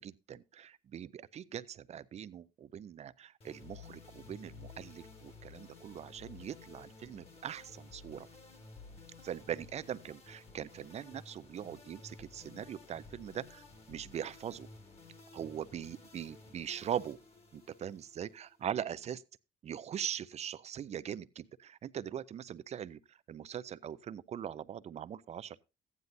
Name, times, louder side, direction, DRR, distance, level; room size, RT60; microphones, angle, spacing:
voice 1, 0.0-8.3 9.2-14.7 15.3-17.2 17.5-19.2 19.6-25.6, right 9 dB, 40° right, 0.5 m, -41 dB
sound 1, 3.4-18.8, left 4 dB, 35° left, 1.9 m, -54 dB
14.5 x 9.6 x 2.6 m
cardioid pair, 110°, 17 cm